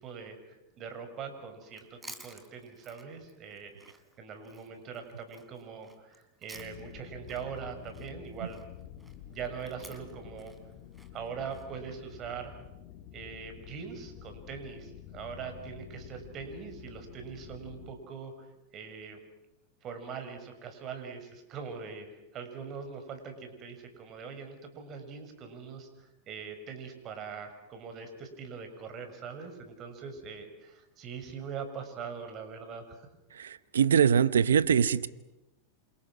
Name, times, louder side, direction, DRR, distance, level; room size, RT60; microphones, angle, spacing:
voice 1, 0.0-8.6 9.3-10.5 11.1-12.5 13.1-18.5 18.7-19.2 19.8-33.1, right 6 dB, 40° right, 6.2 m, -42 dB
Chewing mastication, 1.7-7.0 7.3-11.7, right 2 dB, 10° right, 3.6 m, -53 dB
sound 1, 6.5-17.9, left 10 dB, 50° left, 3.2 m, -49 dB
voice 2, 33.3-35.1, right 7 dB, 90° right, 1.0 m, -23 dB
28.0 x 27.5 x 6.3 m
hypercardioid pair, 110°, 0 cm